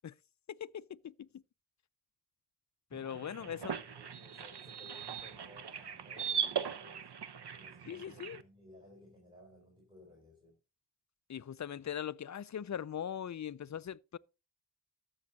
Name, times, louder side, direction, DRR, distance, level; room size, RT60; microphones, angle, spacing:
voice 1, 0.5-1.3 2.9-3.7 7.8-8.4 11.3-14.2, left 9 dB, 40° left, 0.4 m, -41 dB
sound 1, 2.9-8.4, right 8 dB, 65° right, 0.8 m, -40 dB
voice 2, 3.4-7.1 7.5-10.6, left 1 dB, 10° right, 4.6 m, -58 dB
13.0 x 7.1 x 4.0 m
wide cardioid pair, 60°, 43 cm